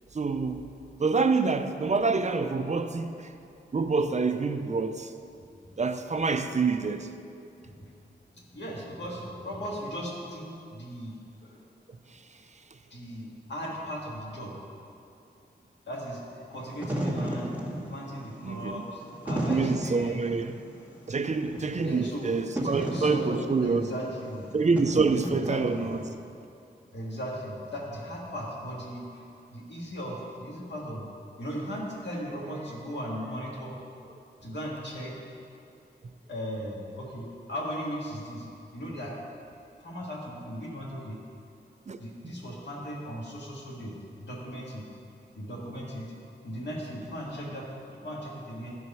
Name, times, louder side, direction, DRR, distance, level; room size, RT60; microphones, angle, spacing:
voice 1, 0.1-0.7 1.0-3.3 3.7-5.1 5.8-7.1 18.4-18.8 19.5-20.6 21.1-23.9 24.5-26.0 41.9-42.0, right 4 dB, 40° right, 0.4 m, -26 dB
voice 2, 8.3-11.1 11.4-11.6 12.9-14.5 15.9-16.2 16.5-17.5 17.9-20.2 21.8-22.3 22.6-24.5 25.3-25.9 26.9-29.2 29.5-31.1 31.4-33.8 34.4-35.2 36.3-38.5 38.7-39.2 39.8-41.2 42.0-43.9 44.2-44.8 45.4-46.1 46.4-48.8, equal, 75° left, 1.9 m, -37 dB
Wind / Fire, 16.6-26.1, right 1 dB, 10° right, 1.6 m, -34 dB
12.5 x 4.8 x 5.5 m
wide cardioid pair, 110°, 18 cm